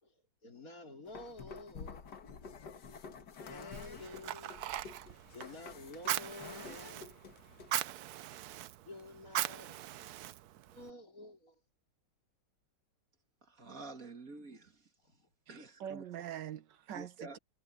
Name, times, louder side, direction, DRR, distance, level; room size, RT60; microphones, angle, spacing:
voice 1, 0.4-2.1 3.4-4.9 5.3-7.4 8.9-9.9 10.7-11.6 15.0-15.3, left 2 dB, 50° left, 3.9 m, -50 dB
sound 1, 1.1-7.7, left 5 dB, 70° left, 2.0 m, -50 dB
Fire, 3.7-10.9, right 13 dB, 70° right, 1.1 m, -40 dB
voice 2, 13.4-14.9 15.5-16.0 16.9-17.4, right 3 dB, 50° right, 2.7 m, -49 dB
voice 3, 15.5-17.4, right 10 dB, 90° right, 1.7 m, -44 dB
omnidirectional pair, 1.9 m